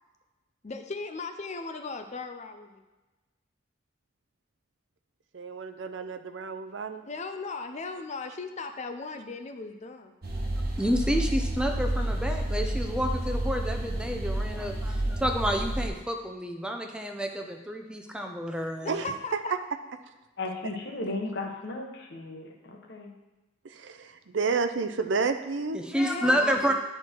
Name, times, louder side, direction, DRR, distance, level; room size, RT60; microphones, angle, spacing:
voice 1, 0.6-2.8 6.8-10.4 18.8-19.5 26.0-26.7, left 3 dB, 35° left, 7 dB, 0.6 m, -37 dB
voice 2, 5.3-7.0 18.9-19.0 23.6-25.8, right 4 dB, 75° right, 8 dB, 0.6 m, -30 dB
sound 1, 10.2-15.9, right 1 dB, 55° right, 1.2 m, -30 dB
voice 3, 10.8-18.9 25.7-26.7, equal, 5° right, 3 dB, 0.7 m, -29 dB
voice 4, 20.4-23.1 26.2-26.7, left 2 dB, 65° left, 2 dB, 1.3 m, -36 dB
10.5 x 4.6 x 4.5 m, 1.1 s
head